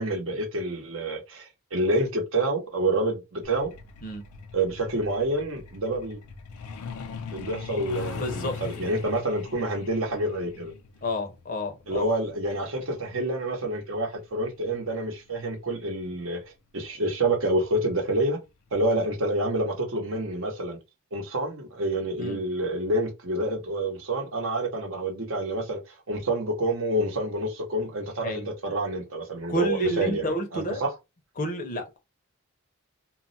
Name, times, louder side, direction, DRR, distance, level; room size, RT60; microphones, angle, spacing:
voice 1, 0.0-3.7 4.5-6.2 7.3-10.7 11.9-16.4 16.7-18.4 18.7-20.8 21.1-30.2 30.5-30.9, right 1 dB, 65° right, 0.8 m, -28 dB
Truck, 3.4-15.7 16.9-17.1 17.5-17.7 18.1-18.3 18.7-18.8 19.2-19.3, left 5 dB, 90° left, 0.5 m, -42 dB
voice 2, 8.1-8.8 11.0-12.1 22.2-22.4 28.2-28.5 29.5-30.8 31.4-32.0, equal, 35° left, 0.5 m, -30 dB
2.3 x 2.0 x 3.8 m
head